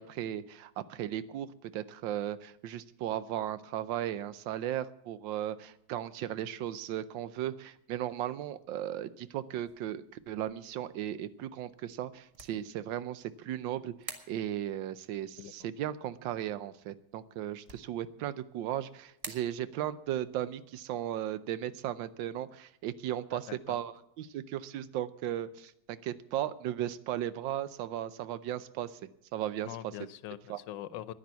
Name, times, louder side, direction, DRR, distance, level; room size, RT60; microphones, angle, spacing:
voice 1, 0.0-13.9 14.3-29.0 29.3-29.7 30.5-30.6, right 11 dB, 90° right, 15 dB, 1.4 m, -36 dB
sound 1, 9.7-23.8, right 2 dB, 20° right, 1.1 m, -54 dB
voice 2, 15.4-15.7 23.3-23.8 29.6-31.1, left 12 dB, 80° left, 16 dB, 1.3 m, -43 dB
10.5 x 10.5 x 8.2 m, 0.76 s
omnidirectional pair, 2.0 m